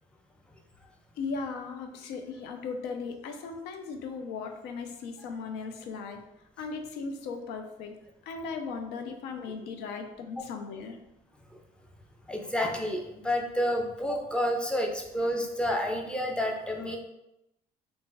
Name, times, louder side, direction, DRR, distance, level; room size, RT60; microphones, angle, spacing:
voice 1, 1.2-6.2 6.6-8.0 8.3-11.0, left 4 dB, 85° left, 5 dB, 0.5 m, -37 dB
voice 2, 12.3-17.0, equal, 5° left, 1 dB, 0.5 m, -29 dB
2.4 x 2.3 x 3.9 m, 0.88 s
cardioid pair, 110°, 17 cm